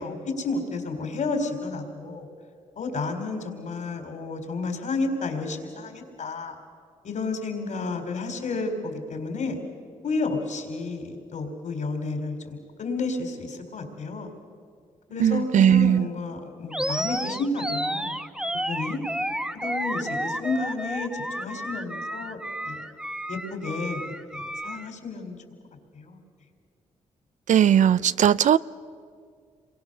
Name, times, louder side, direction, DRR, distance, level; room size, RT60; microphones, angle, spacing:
voice 1, 0.0-2.3 2.8-6.5 7.0-9.6 10.0-14.3 15.1-18.2 18.5-19.0 19.5-22.4 22.7-22.8 23.3-24.0 24.3-25.4 25.9-26.2, left 3 dB, 70° left, 5 dB, 4.0 m, -31 dB
voice 2, 15.2-16.1 27.5-28.6, right 9 dB, 70° right, 17 dB, 0.5 m, -18 dB
Animal, 16.7-24.9, equal, 5° right, 1.0 m, -31 dB
27.5 x 23.0 x 6.8 m, 2.1 s
supercardioid pair, 55°, 13 cm